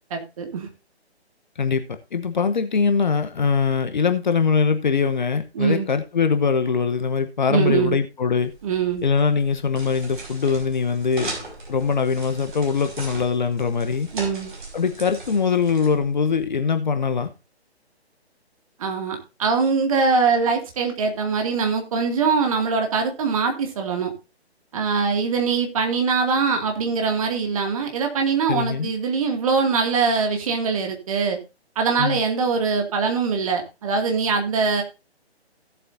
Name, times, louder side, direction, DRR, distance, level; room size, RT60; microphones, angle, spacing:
voice 1, 0.1-0.7 5.6-5.9 7.5-8.0 8.6-9.0 14.1-14.5 18.8-24.1 24.7-31.4 31.8-34.8, right 5 dB, 30° right, 2.2 m, -22 dB
voice 2, 2.1-8.5 9.0-11.3 11.7-14.1 14.7-17.3 28.5-28.9 32.0-32.2, left 5 dB, 45° left, 1.0 m, -22 dB
sound 1, 8.4-16.4, right 2 dB, 50° right, 5.1 m, -38 dB
16.5 x 7.8 x 2.7 m
figure-of-eight pair, 140°, 33 cm